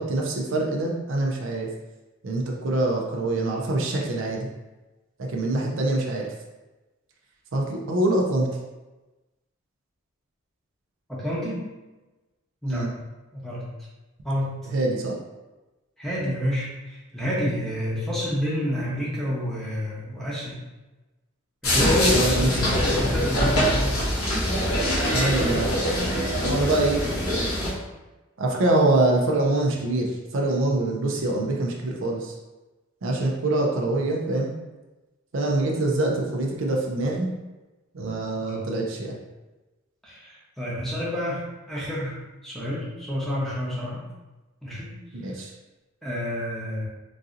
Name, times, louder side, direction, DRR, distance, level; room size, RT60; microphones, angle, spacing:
voice 1, 0.0-1.7 2.2-4.5 5.2-6.3 7.5-8.5 12.7-12.9 14.7-15.1 22.0-22.5 25.1-25.7 26.4-27.0 28.4-32.3 33.0-34.5 35.3-37.3 37.9-39.2 45.1-45.5, right 2 dB, 60° right, -1 dB, 0.5 m, -24 dB
voice 2, 11.1-11.7 12.6-12.9 13.3-13.6 14.2-14.7 16.0-20.6 21.6-24.0 38.4-38.7 40.0-44.0 44.6-44.9 46.0-46.8, equal, ahead, -7 dB, 0.8 m, -29 dB
sound 1, 21.6-27.7, equal, 85° left, 1.1 m, -23 dB
3.9 x 2.7 x 2.4 m, 1.1 s
head